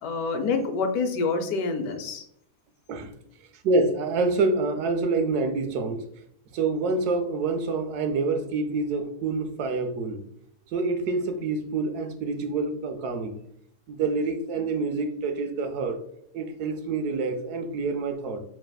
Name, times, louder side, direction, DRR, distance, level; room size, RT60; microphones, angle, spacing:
voice 1, 0.0-2.2, left 4 dB, 80° left, 1.1 m, -27 dB
voice 2, 3.7-6.0 6.5-10.2 10.7-13.4 13.9-16.0 16.3-18.4, right 3 dB, 85° right, 1.1 m, -27 dB
4.8 x 3.2 x 2.2 m
omnidirectional pair, 1.6 m